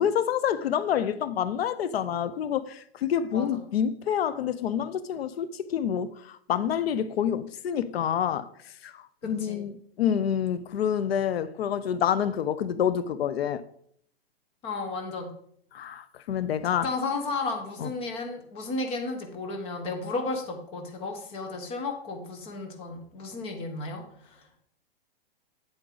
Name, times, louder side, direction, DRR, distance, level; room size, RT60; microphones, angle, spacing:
voice 1, 0.0-8.5 8.8-13.6 15.7-16.9 17.8-17.9, left 9 dB, 75° left, 0.7 m, -28 dB
voice 2, 9.2-9.6 14.6-15.3 16.8-24.6, left 3 dB, 20° left, 1.1 m, -33 dB
8.9 x 7.9 x 3.9 m
hypercardioid pair, 165°, 30 cm